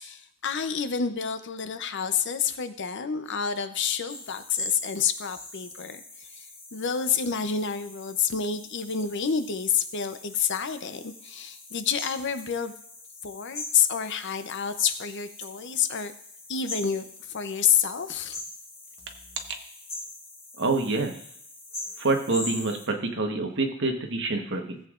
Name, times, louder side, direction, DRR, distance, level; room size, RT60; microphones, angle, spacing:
voice 1, 0.0-6.5 6.7-12.7 13.2-16.1 16.5-18.4, left 7 dB, 55° left, 10 dB, 0.6 m, -28 dB
sound 1, 4.1-22.9, left 2 dB, 30° left, 4.6 m, -42 dB
voice 2, 20.6-21.2 22.0-24.8, right 3 dB, 55° right, 4 dB, 1.2 m, -27 dB
16.5 x 8.1 x 2.5 m, 0.67 s
head